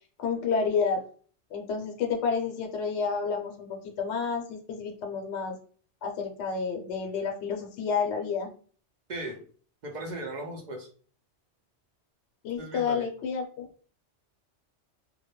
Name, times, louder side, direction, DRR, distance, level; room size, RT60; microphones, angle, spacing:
voice 1, 0.2-1.1 1.5-5.6 6.0-8.5 12.4-13.7, left 5 dB, 75° left, 3 dB, 0.9 m, -30 dB
voice 2, 9.1-9.4 9.8-10.9 12.6-13.1, right 1 dB, 50° right, 1 dB, 0.6 m, -37 dB
2.2 x 2.1 x 2.9 m, 0.43 s
omnidirectional pair, 1.2 m